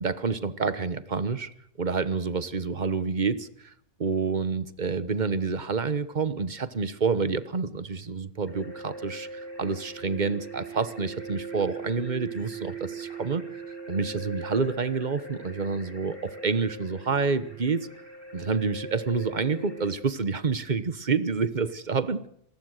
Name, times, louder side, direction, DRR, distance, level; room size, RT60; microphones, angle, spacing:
voice 1, 0.0-1.5 1.8-3.7 4.0-13.6 13.9-17.9 18.3-22.3, right 4 dB, 40° right, 14 dB, 1.2 m, -28 dB
sound 1, 8.5-19.9, right 4 dB, 20° left, 7.0 m, -40 dB
26.0 x 20.0 x 6.5 m, 0.71 s
omnidirectional pair, 1.3 m